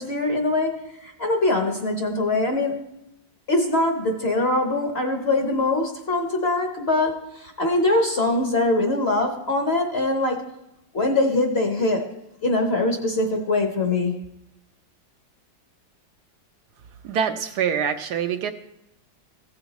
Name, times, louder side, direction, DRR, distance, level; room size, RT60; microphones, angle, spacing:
voice 1, 0.0-2.9 3.5-10.4 10.9-12.1 12.4-14.1, left 2 dB, 40° left, 3 dB, 1.0 m, -23 dB
voice 2, 17.0-18.5, right 7 dB, 70° right, 7 dB, 1.1 m, -25 dB
15.5 x 6.8 x 4.1 m, 0.84 s
omnidirectional pair, 1.9 m